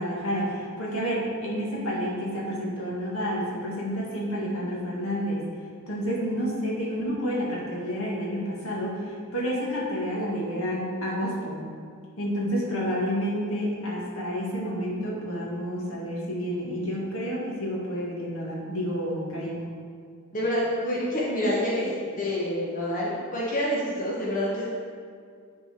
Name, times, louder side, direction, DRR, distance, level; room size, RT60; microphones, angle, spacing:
voice 1, 0.0-5.5 5.9-11.6 12.2-19.6, equal, 70° left, -4 dB, 1.9 m, -29 dB
voice 2, 20.3-24.7, equal, 40° left, -6 dB, 1.2 m, -27 dB
10.5 x 4.4 x 4.5 m, 2.1 s
head